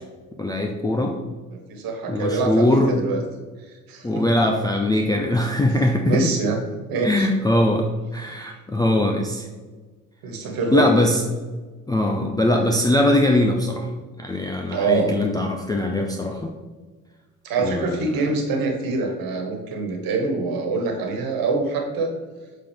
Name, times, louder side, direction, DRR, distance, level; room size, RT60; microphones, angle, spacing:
voice 1, 0.4-1.1 2.1-2.9 4.0-6.3 7.0-7.9 8.1-9.5 10.7-11.2 11.9-13.9 14.2-16.5 17.6-18.0, left 1 dB, 10° left, 1 dB, 0.6 m, -21 dB
voice 2, 1.5-3.2 3.9-4.2 6.1-6.6 6.9-7.3 10.2-11.1 12.5-12.7 14.7-15.2 17.4-22.1, right 4 dB, 55° right, 2 dB, 1.7 m, -25 dB
7.4 x 4.2 x 3.5 m, 1.4 s
figure-of-eight pair, 55°, 43 cm